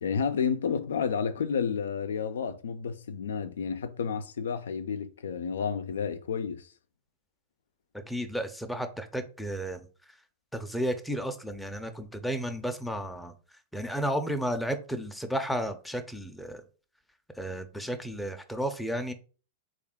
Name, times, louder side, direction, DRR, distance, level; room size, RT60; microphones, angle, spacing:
voice 1, 0.0-6.7, left 6 dB, 85° left, 0.4 m, -31 dB
voice 2, 7.9-9.9 10.5-13.3 13.7-16.6 17.4-19.1, equal, ahead, 0.5 m, -33 dB
3.5 x 2.4 x 3.6 m
hypercardioid pair, 115°, 0 cm